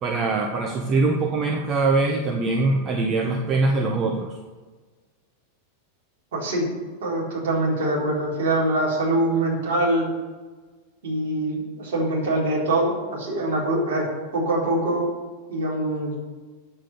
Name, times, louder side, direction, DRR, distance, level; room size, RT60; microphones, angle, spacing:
voice 1, 0.0-4.3, right 3 dB, 30° right, 1 dB, 1.1 m, -23 dB
voice 2, 6.3-6.7 7.0-10.1 11.0-14.1 14.3-15.1 15.5-16.1, right 1 dB, 55° right, -4 dB, 4.0 m, -24 dB
8.7 x 7.6 x 8.4 m, 1.3 s
figure-of-eight pair, 90°, 0 cm